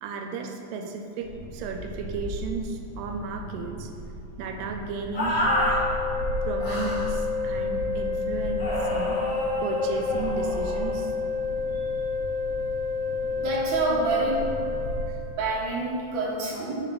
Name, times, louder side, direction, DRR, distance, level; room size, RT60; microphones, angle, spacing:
voice 1, 0.0-3.9 4.4-5.5 6.4-9.2 9.6-11.1 15.1-15.2, right 4 dB, 85° right, 5 dB, 2.2 m, -34 dB
sound 1, 1.2-15.3, equal, 65° left, 1.5 m, -37 dB
sound 2, 5.1-5.8 6.6-7.1 8.6-10.9, left 1 dB, 45° left, 1.5 m, -28 dB
sound 3, 5.4-15.1, left 4 dB, 85° left, 2.1 m, -30 dB
voice 2, 13.3-14.4 15.4-16.8, right 3 dB, 60° right, -5 dB, 1.3 m, -27 dB
4.9 x 3.9 x 5.8 m, 2.6 s
omnidirectional pair, 3.8 m